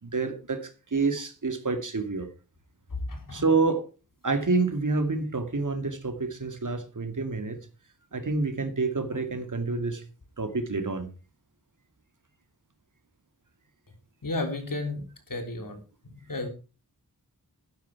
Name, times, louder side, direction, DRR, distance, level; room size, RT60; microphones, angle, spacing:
voice 1, 0.0-2.3 3.3-3.8 4.2-7.6 8.1-10.0 10.4-11.1, right 3 dB, 55° right, 8 dB, 2.4 m, -28 dB
voice 2, 2.9-3.4 14.2-15.0 15.3-16.5, left 2 dB, 60° left, 6 dB, 3.5 m, -33 dB
12.5 x 10.0 x 4.7 m, 0.33 s
cardioid pair, 55°, 37 cm